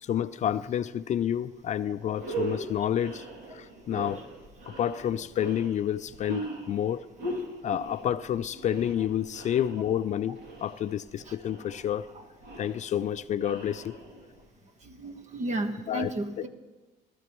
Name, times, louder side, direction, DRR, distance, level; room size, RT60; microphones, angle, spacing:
voice 1, 0.0-3.2 3.5-4.2 4.8-7.0 7.6-12.1 12.6-14.0 15.9-16.1 16.4-16.5, left 10 dB, 45° left, 14 dB, 0.4 m, -29 dB
sound 1, 1.6-1.7 2.1-14.4, right 2 dB, 65° right, 2.6 m, -40 dB
voice 2, 14.8-16.5, right 1 dB, 45° right, 7 dB, 1.3 m, -33 dB
19.0 x 13.0 x 3.1 m, 1.2 s
cardioid pair, 110°, 17 cm